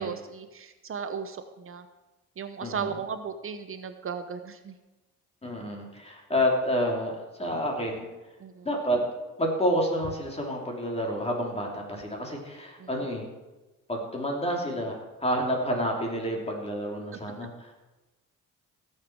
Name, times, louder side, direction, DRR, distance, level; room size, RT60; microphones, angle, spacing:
voice 1, 0.0-1.9 2.4-4.7 8.4-8.7 12.8-12.9, right 6 dB, 45° right, 9 dB, 0.9 m, -36 dB
voice 2, 2.6-3.0 5.4-8.1 8.6-9.0 9.4-13.3 13.9-17.7, equal, 20° left, 0 dB, 3.1 m, -29 dB
17.0 x 7.6 x 4.7 m, 1.1 s
cardioid pair, 90°, 30 cm